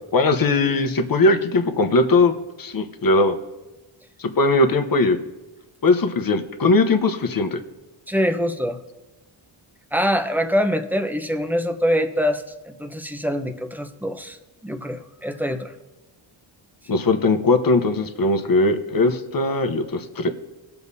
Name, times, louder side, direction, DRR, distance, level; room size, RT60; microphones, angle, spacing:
voice 1, 0.1-2.3 2.6-3.3 4.2-5.2 5.8-7.6 16.9-20.3, left 2 dB, 45° left, 7 dB, 1.0 m, -19 dB
voice 2, 8.1-8.8 9.9-14.4 14.6-15.7, equal, 5° right, 7 dB, 0.9 m, -24 dB
20.5 x 6.8 x 2.8 m, 1.1 s
cardioid pair, 65°, 49 cm